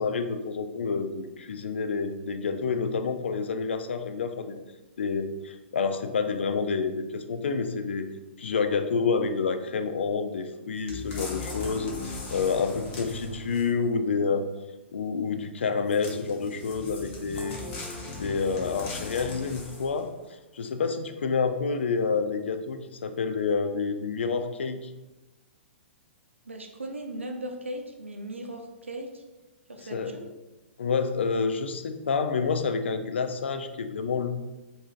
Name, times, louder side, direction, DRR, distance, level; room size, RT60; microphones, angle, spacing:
voice 1, 0.0-4.6 5.0-8.1 8.4-11.9 12.3-14.5 14.9-17.6 18.2-20.1 20.5-24.9 29.9-30.1 30.8-34.3, left 5 dB, 65° left, 8 dB, 0.4 m, -28 dB
sound 1, 10.9-13.9 15.9-20.1 20.6-20.7, left 3 dB, 30° left, 0.9 m, -38 dB
voice 2, 26.4-29.2 29.7-30.3, right 1 dB, 80° right, 3 dB, 0.6 m, -38 dB
4.9 x 2.6 x 2.3 m, 1.1 s
figure-of-eight pair, 110°, 7 cm